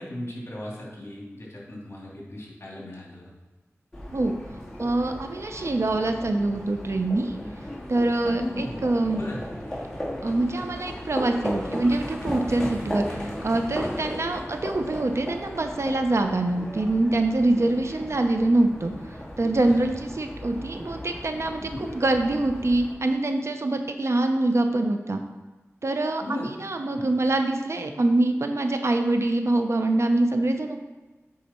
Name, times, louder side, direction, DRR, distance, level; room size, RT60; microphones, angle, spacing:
voice 1, 0.0-3.3 8.4-8.8 9.1-9.5 19.5-19.8 21.7-21.9 26.2-26.5 26.9-27.1, left 1 dB, 55° left, -5 dB, 2.6 m, -36 dB
Livestock farm animals working animals, 3.9-22.9, equal, 15° left, 2.5 m, -36 dB
voice 2, 4.8-7.3 7.9-9.2 10.2-18.9 19.4-25.2 25.8-30.8, right 2 dB, 65° right, 5 dB, 0.7 m, -24 dB
8.5 x 4.9 x 4.4 m, 1.2 s
wide cardioid pair, 70°, 5 cm